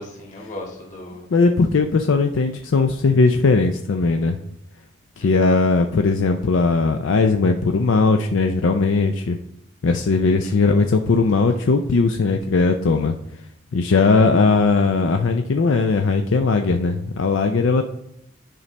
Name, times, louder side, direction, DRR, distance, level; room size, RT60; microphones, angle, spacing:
voice 1, 0.0-1.3 5.2-5.5 10.4-10.8 14.1-14.3, left 1 dB, 40° left, -1 dB, 1.9 m, -37 dB
voice 2, 1.3-4.4 5.2-9.4 9.8-13.1 13.7-17.8, left 3 dB, 75° left, 5 dB, 0.5 m, -18 dB
9.9 x 5.3 x 3.3 m, 0.76 s
head